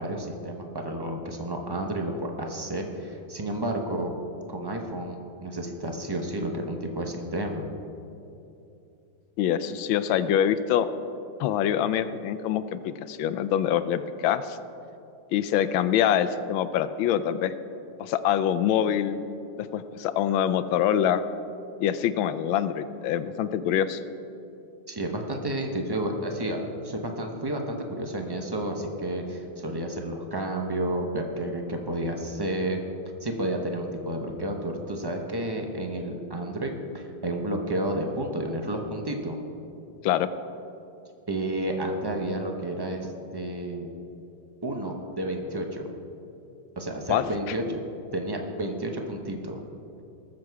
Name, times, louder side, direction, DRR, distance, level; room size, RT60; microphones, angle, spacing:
voice 1, 0.0-4.2 4.5-7.7 24.9-32.8 33.2-39.4 41.3-43.9 44.6-45.9 46.8-47.8 48.1-49.6, right 1 dB, 25° right, 3 dB, 0.5 m, -31 dB
voice 2, 9.4-10.9 11.4-14.6 15.3-17.5 18.0-19.2 19.6-21.2 21.8-24.0 40.0-40.3 47.1-47.2, left 10 dB, 85° left, 12 dB, 1.4 m, -25 dB
19.0 x 7.5 x 4.7 m, 2.8 s
omnidirectional pair, 2.1 m